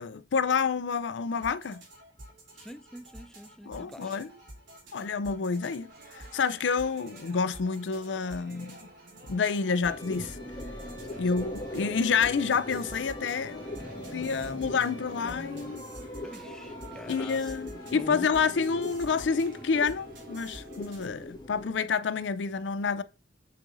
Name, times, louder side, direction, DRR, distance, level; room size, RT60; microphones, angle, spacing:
voice 1, 0.0-1.8 3.7-4.3 4.9-8.9 9.3-10.4 11.2-13.7 14.1-15.8 17.1-23.0, left 5 dB, 75° left, 0.5 m, -29 dB
sound 1, 1.2-21.1, right 1 dB, 90° right, 3.3 m, -49 dB
voice 2, 2.5-4.1 11.1-11.6 16.2-17.6 17.9-18.3, equal, 5° left, 0.4 m, -45 dB
sound 2, 5.9-21.2, right 2 dB, 55° right, 1.1 m, -55 dB
sound 3, 9.8-21.7, left 1 dB, 25° left, 1.7 m, -41 dB
7.6 x 5.1 x 2.6 m
head